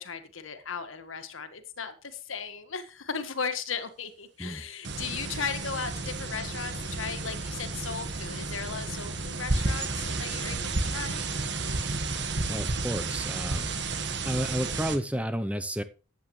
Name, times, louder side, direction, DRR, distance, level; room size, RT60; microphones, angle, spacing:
voice 1, 0.0-11.2, left 6 dB, 85° left, 9 dB, 1.6 m, -36 dB
sound 1, 4.8-15.0, right 3 dB, 60° right, 1.5 m, -32 dB
voice 2, 12.5-13.7 14.2-15.8, equal, 5° right, 9 dB, 0.7 m, -31 dB
14.5 x 9.2 x 3.2 m, 0.34 s
head